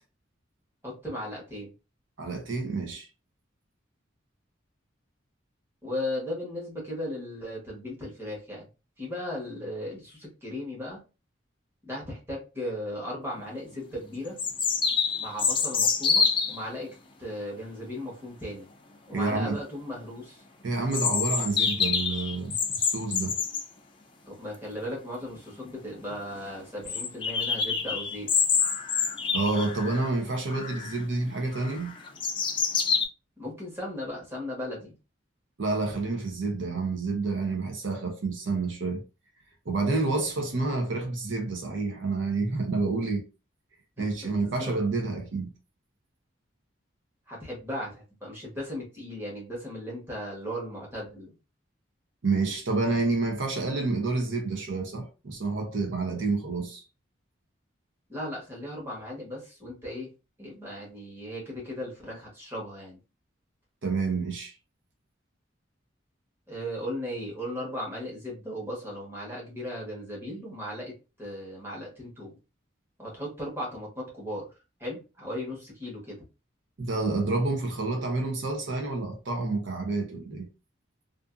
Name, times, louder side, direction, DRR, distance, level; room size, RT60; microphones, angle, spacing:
voice 1, 0.8-1.7 5.8-8.7 9.0-11.0 11.8-14.4 15.2-16.9 17.2-18.7 19.1-20.4 24.3-28.3 33.4-34.9 44.0-44.7 47.3-51.3 58.1-60.1 60.4-63.0 66.5-72.4 73.0-74.5 74.8-76.2, left 1 dB, 10° right, 1.1 m, -37 dB
voice 2, 2.2-3.1 19.1-19.6 20.6-23.4 29.3-31.9 35.6-39.0 39.7-43.2 44.0-45.5 52.2-56.8 63.8-64.5 76.8-80.5, right 3 dB, 70° right, 0.7 m, -29 dB
sound 1, 13.4-13.5 14.4-16.6 20.9-23.7 25.3-25.4 25.6-25.7 26.1-26.2 26.9-30.1 30.5-31.0 31.5-33.0, left 5 dB, 25° left, 0.4 m, -27 dB
2.5 x 2.5 x 2.4 m
head